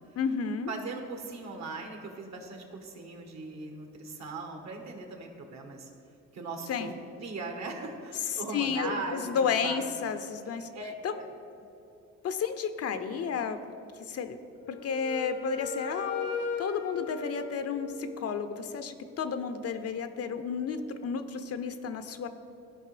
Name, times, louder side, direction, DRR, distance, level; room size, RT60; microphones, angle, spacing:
voice 1, 0.2-0.7 6.7-7.0 8.2-10.7 11.0-11.2 12.2-13.8 14.1-14.4 14.7-22.3, left 6 dB, 55° left, 10 dB, 0.6 m, -32 dB
voice 2, 0.7-5.9 6.3-6.9 7.2-9.9 10.7-11.3, right 3 dB, 60° right, 3 dB, 1.4 m, -39 dB
Wind instrument woodwind instrument, 14.6-18.5, left 5 dB, 90° left, 1.2 m, -37 dB
14.5 x 5.2 x 3.3 m, 2.8 s
cardioid pair, 90°, 30 cm